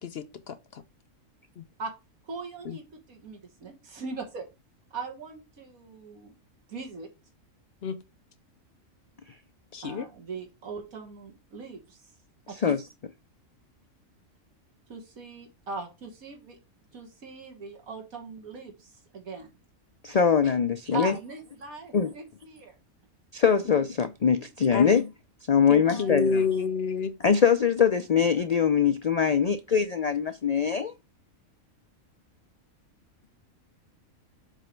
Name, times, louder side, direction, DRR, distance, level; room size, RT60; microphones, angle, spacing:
voice 1, 0.0-0.8 1.6-1.7 2.6-2.8 7.8-8.0 9.7-10.1 24.7-24.9 25.7-27.1, left 5 dB, 60° left, 0.8 m, -29 dB
voice 2, 2.2-4.5 4.9-6.3 6.7-7.1 9.8-12.0 12.5-12.8 14.9-16.6 16.9-19.5 20.9-22.8 25.8-26.2, right 4 dB, 90° right, 2.0 m, -40 dB
voice 3, 20.0-21.1 21.9-22.1 23.3-25.1 25.5-26.4 27.2-30.9, left 7 dB, 90° left, 0.3 m, -23 dB
7.4 x 3.2 x 5.1 m
omnidirectional pair, 1.4 m